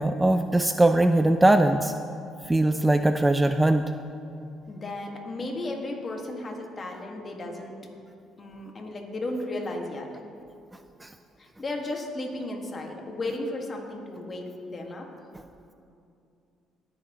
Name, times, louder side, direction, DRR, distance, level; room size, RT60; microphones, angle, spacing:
voice 1, 0.0-1.9 2.5-3.9 11.0-11.1, right 1 dB, 10° right, 8 dB, 0.3 m, -21 dB
voice 2, 4.7-7.8 8.4-10.1 11.4-15.1, left 2 dB, 35° left, 1 dB, 1.6 m, -34 dB
19.0 x 6.9 x 3.0 m, 2.6 s
cardioid pair, 95°, 0 cm